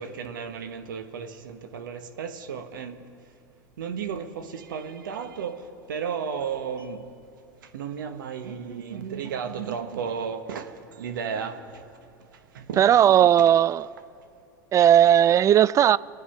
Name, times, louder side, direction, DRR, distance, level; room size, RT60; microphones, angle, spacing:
voice 1, 0.0-3.0 3.8-7.1 7.6-11.9 12.3-13.5, right 6 dB, 85° right, 1.2 m, -34 dB
voice 2, 12.8-13.9 14.7-16.0, right 10 dB, 30° right, 0.3 m, -17 dB
27.0 x 9.2 x 5.7 m
hypercardioid pair, 90°, 11 cm